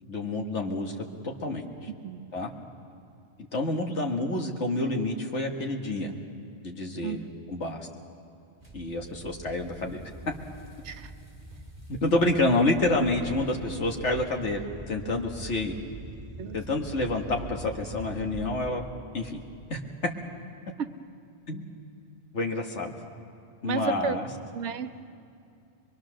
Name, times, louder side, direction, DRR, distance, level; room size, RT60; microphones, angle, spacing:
voice 1, 0.0-0.9 1.4-1.9 2.3-2.5 3.5-6.1 6.6-7.9 8.7-10.1 11.9-15.8 16.5-18.8 19.1-19.4 19.7-19.8 21.5-21.7 22.3-23.0 23.6-24.3, left 2 dB, 85° left, 2 dB, 2.0 m, -28 dB
voice 2, 1.9-2.3 7.0-7.2 10.8-11.1 16.4-16.6 20.8-20.9 23.6-24.2 24.5-25.0, right 6 dB, 80° right, 9 dB, 1.1 m, -32 dB
sound 1, 8.6-18.7, right 2 dB, 15° left, 3.6 m, -43 dB
23.5 x 23.5 x 6.4 m, 2.5 s
omnidirectional pair, 1.2 m